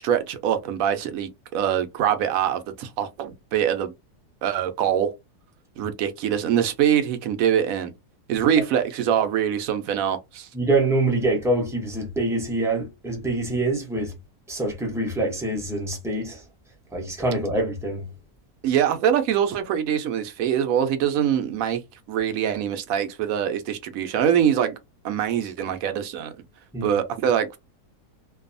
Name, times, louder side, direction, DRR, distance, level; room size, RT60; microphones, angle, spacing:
voice 1, 0.0-3.9 4.4-5.1 5.8-7.9 8.3-10.5 18.6-21.8 22.1-24.8 25.0-26.3 26.8-27.6, right 9 dB, 70° right, 0.9 m, -23 dB
voice 2, 10.5-14.1 14.5-16.4 16.9-18.1 26.7-27.0, right 2 dB, 5° right, 0.4 m, -25 dB
2.6 x 2.3 x 2.5 m
omnidirectional pair, 1.7 m